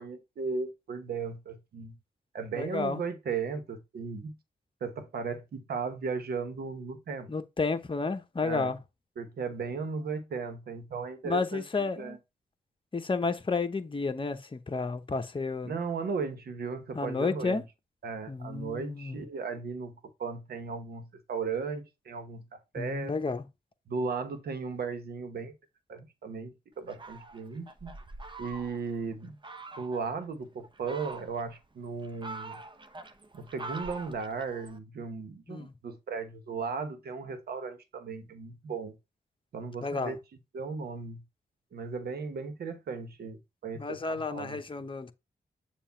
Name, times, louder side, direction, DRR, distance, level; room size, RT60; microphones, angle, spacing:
voice 1, 0.0-2.0 2.3-4.4 4.8-7.3 8.4-8.7 9.2-12.2 15.6-17.6 18.0-23.1 23.9-25.5 25.9-27.9 28.4-29.4 29.8-32.6 33.3-39.0 39.5-40.2 40.5-41.2 41.7-44.6, right 5 dB, 75° right, 1.1 m, -36 dB
voice 2, 2.5-3.0 7.3-8.8 11.2-12.2 12.9-15.7 16.9-17.6 18.3-19.2 22.8-23.4 35.5-35.7 39.8-40.1 43.7-45.1, left 4 dB, 30° left, 0.9 m, -31 dB
Fowl, 26.9-28.9 29.4-30.0 30.6-31.6 32.0-34.8, right 2 dB, 30° right, 0.9 m, -44 dB
7.2 x 2.5 x 5.7 m
cardioid pair, 60°, 16 cm